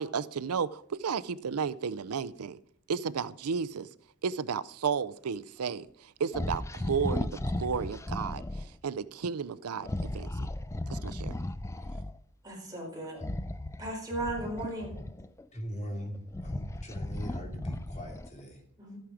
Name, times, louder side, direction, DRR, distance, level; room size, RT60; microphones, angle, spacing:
voice 1, 0.0-2.6 2.9-3.9 4.2-5.9 6.2-8.4 8.8-9.9 10.1-10.5 10.9-11.4, right 6 dB, 90° right, 17 dB, 0.5 m, -33 dB
sound 1, 6.3-8.7 9.8-12.2 13.1-15.4 16.0-18.4, left 1 dB, 15° left, 0.4 m, -35 dB
voice 2, 12.4-13.2 13.8-14.9 18.8-19.0, right 1 dB, 15° right, -2 dB, 4.6 m, -36 dB
voice 3, 15.5-18.6, equal, 30° left, 2 dB, 2.6 m, -40 dB
12.5 x 9.3 x 4.9 m, 0.63 s
head